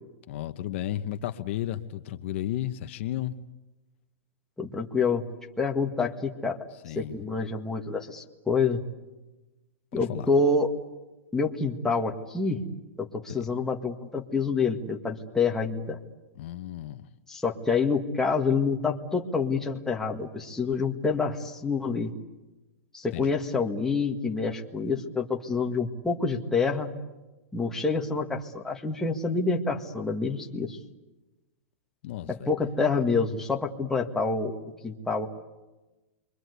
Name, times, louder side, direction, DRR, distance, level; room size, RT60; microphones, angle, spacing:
voice 1, 0.3-3.4 6.8-7.2 10.1-10.3 13.3-13.4 16.4-17.1 23.1-23.4 32.0-32.5, left 12 dB, 55° left, 8 dB, 1.1 m, -33 dB
voice 2, 4.6-5.2 5.6-6.6 7.0-8.8 9.9-10.7 11.3-12.6 13.0-16.0 17.3-22.1 22.9-26.9 27.5-30.8 32.3-34.6 34.8-35.3, left 4 dB, 5° left, 0 dB, 1.9 m, -27 dB
28.5 x 23.5 x 8.2 m, 1.1 s
supercardioid pair, 155°, 8 cm